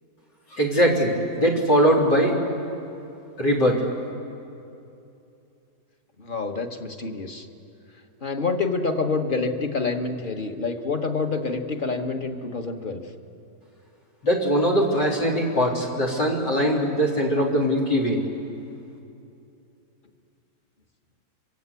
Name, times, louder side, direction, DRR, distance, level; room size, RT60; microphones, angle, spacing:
voice 1, 0.5-2.3 3.4-3.8 14.2-18.2, equal, 85° left, 0 dB, 4.4 m, -21 dB
voice 2, 6.2-7.5 8.2-13.0, left 4 dB, 30° left, 5 dB, 1.5 m, -27 dB
26.5 x 25.0 x 8.4 m, 2.7 s
omnidirectional pair, 1.8 m